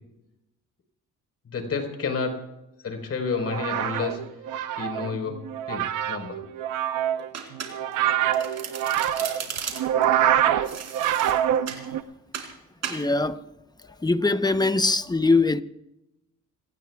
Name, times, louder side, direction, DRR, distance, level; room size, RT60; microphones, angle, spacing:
voice 1, 1.5-2.4 2.8-4.3 4.8-5.4 5.7-6.4 9.2-9.3, left 5 dB, 50° left, 4.5 m, -30 dB
sound 1, 3.3-12.0, right 11 dB, 85° right, 1.0 m, -25 dB
Domestic sounds home sounds, 7.3-8.0 8.3-10.0 10.6-11.9 12.3-12.5 12.8-13.0, right 7 dB, 60° right, 3.7 m, -35 dB
voice 2, 12.9-13.4 14.0-15.6, left 3 dB, 15° left, 0.9 m, -22 dB
28.0 x 18.5 x 2.4 m
cardioid pair, 90°, 30 cm